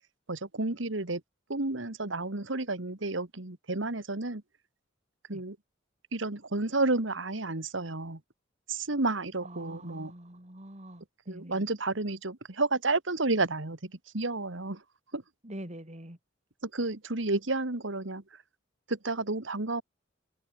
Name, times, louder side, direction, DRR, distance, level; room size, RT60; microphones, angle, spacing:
voice 1, 0.3-1.2 1.5-4.4 5.3-5.6 6.1-8.2 8.7-10.1 11.3-14.8 15.1-15.2 16.6-18.4 18.9-19.8, right 2 dB, 70° right, 1.9 m, -31 dB
voice 2, 9.4-11.7 15.4-16.2, right 1 dB, 35° right, 3.8 m, -45 dB
head